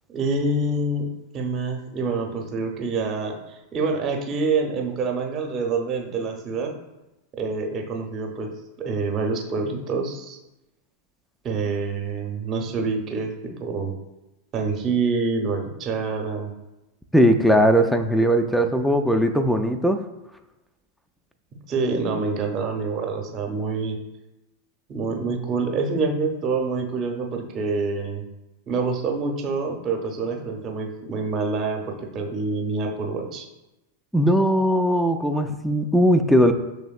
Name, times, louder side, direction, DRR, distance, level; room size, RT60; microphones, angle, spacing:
voice 1, 0.1-1.1 1.3-6.7 7.4-8.5 8.8-10.4 11.4-13.9 14.5-16.5 21.7-24.0 24.9-28.2 28.7-33.5, right 4 dB, 30° right, 3 dB, 0.7 m, -26 dB
voice 2, 17.1-20.0 34.1-36.5, equal, ahead, 6 dB, 0.3 m, -19 dB
6.2 x 3.3 x 2.3 m, 0.98 s
figure-of-eight pair, 90°, 0 cm